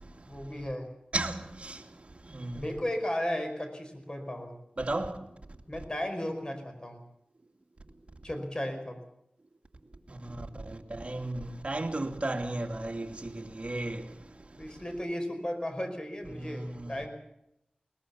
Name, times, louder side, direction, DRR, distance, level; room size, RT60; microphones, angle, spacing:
voice 1, 0.3-0.9 2.5-4.5 5.7-7.0 8.2-9.0 14.6-17.1, left 1 dB, 30° left, 5.2 m, -35 dB
voice 2, 4.8-5.1 11.0-11.3 11.6-13.1 13.3-14.0 16.4-16.6, right 2 dB, 45° right, 2.6 m, -32 dB
21.5 x 20.0 x 7.1 m
wide cardioid pair, 55°, 3 cm